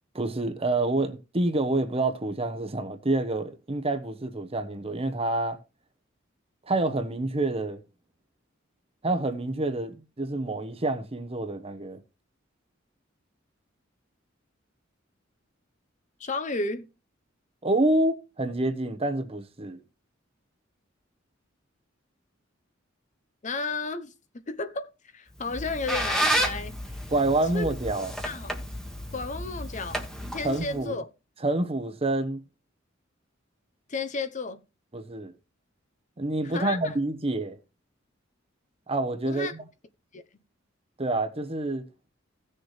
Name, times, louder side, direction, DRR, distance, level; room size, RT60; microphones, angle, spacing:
voice 1, 0.1-5.6 6.7-7.8 9.0-12.0 17.6-19.8 27.1-28.1 30.4-31.0 31.4-32.4 34.9-35.3 36.2-37.6 38.9-39.6 41.0-41.9, right 2 dB, 30° right, 1.0 m, -27 dB
voice 2, 16.2-16.9 23.4-27.0 27.5-27.7 28.2-28.5 29.1-31.1 33.9-34.6 36.4-36.9 39.2-39.5 40.1-40.2, left 3 dB, 40° left, 0.8 m, -33 dB
Squeak, 25.4-30.8, right 1 dB, 5° left, 1.3 m, -31 dB
16.0 x 6.6 x 3.2 m
head